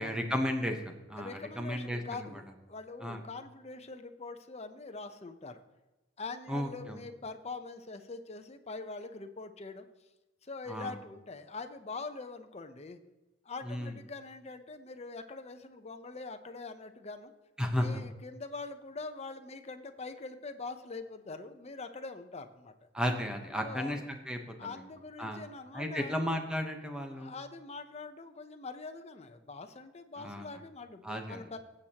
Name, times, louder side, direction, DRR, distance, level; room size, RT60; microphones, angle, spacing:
voice 1, 0.0-2.3 3.0-3.2 6.5-7.0 10.7-10.9 13.6-13.9 17.6-18.0 22.9-24.0 24.3-24.7 25.2-25.4 25.7-27.3 30.2-30.5 31.0-31.4, equal, 5° right, 3 dB, 1.0 m, -34 dB
voice 2, 1.2-5.6 6.2-9.9 10.4-13.0 13.4-17.3 17.7-22.7 23.6-24.0 24.6-26.1 27.2-31.6, left 3 dB, 35° left, 8 dB, 0.8 m, -43 dB
16.5 x 7.3 x 2.9 m, 1.1 s
head